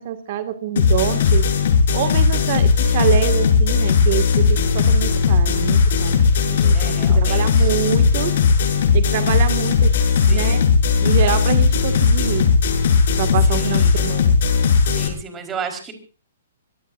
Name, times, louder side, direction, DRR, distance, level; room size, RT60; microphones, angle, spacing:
voice 1, 0.0-1.5 1.9-8.3 8.9-9.9 10.3-10.6 11.0-12.5 13.2-14.3, right 11 dB, 45° right, 8 dB, 2.1 m, -25 dB
sound 1, 0.8-15.1, left 5 dB, 60° left, 6.9 m, -17 dB
voice 2, 4.5-4.9 6.7-7.7 10.3-10.6 13.5-14.2 14.9-15.9, right 5 dB, 15° right, 6 dB, 4.6 m, -34 dB
25.5 x 18.5 x 2.7 m, 0.36 s
hypercardioid pair, 160°, 0 cm